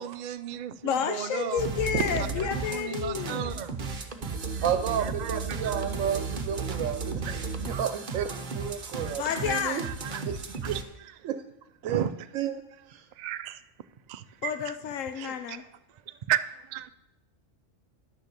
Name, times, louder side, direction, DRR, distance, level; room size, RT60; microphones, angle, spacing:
voice 1, 0.0-1.6 2.7-3.8 5.0-5.9 7.2-7.4 8.2-8.3 8.9-9.6 9.8-10.2 10.6-10.8 11.8-12.1 13.2-13.6 14.1-14.8 15.2-15.6 16.3-16.9, right 10 dB, 65° right, 12 dB, 0.4 m, -34 dB
voice 2, 0.8-3.6 9.2-9.8 14.4-15.6, left 7 dB, 80° left, 8 dB, 1.0 m, -30 dB
sound 1, 1.6-10.8, right 4 dB, 45° right, 1.0 m, -34 dB
voice 3, 4.6-9.9 10.3-10.4 10.7-10.8 11.2-11.4 11.8-12.0 12.3-12.6 12.9-13.1 15.2-15.6, right 9 dB, 90° right, 9 dB, 1.0 m, -31 dB
10.5 x 6.9 x 6.6 m, 0.89 s
omnidirectional pair, 1.3 m